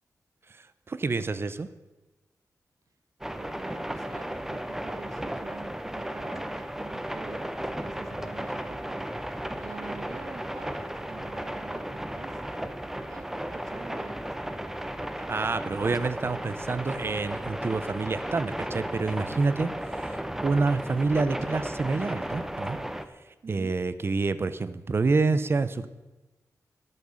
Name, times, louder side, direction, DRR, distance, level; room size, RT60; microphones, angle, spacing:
voice 1, 0.9-1.7 15.2-19.7 20.0-22.8 23.5-25.9, right 3 dB, 40° right, 14 dB, 0.7 m, -27 dB
sound 1, 3.2-23.1, right 1 dB, 5° right, 0.8 m, -35 dB
voice 2, 3.4-9.0 9.6-12.7 13.1-14.4 23.4-23.8, right 5 dB, 65° right, 8 dB, 1.5 m, -46 dB
13.0 x 11.0 x 6.5 m, 1.1 s
wide cardioid pair, 130°, 6 cm